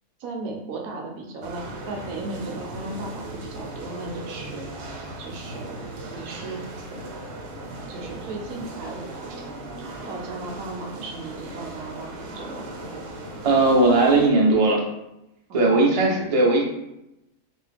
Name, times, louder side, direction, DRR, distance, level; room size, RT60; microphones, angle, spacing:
voice 1, 0.2-4.6 5.2-5.8 6.1-6.6 7.9-9.5 10.1-12.6 15.5-16.3, right 3 dB, 70° right, 1 dB, 1.0 m, -36 dB
sound 1, 1.4-14.3, right 1 dB, 85° right, 1.2 m, -37 dB
voice 2, 13.4-14.8 15.5-16.6, right 2 dB, 45° right, -2 dB, 0.4 m, -18 dB
2.9 x 2.7 x 3.3 m, 0.88 s
omnidirectional pair, 1.6 m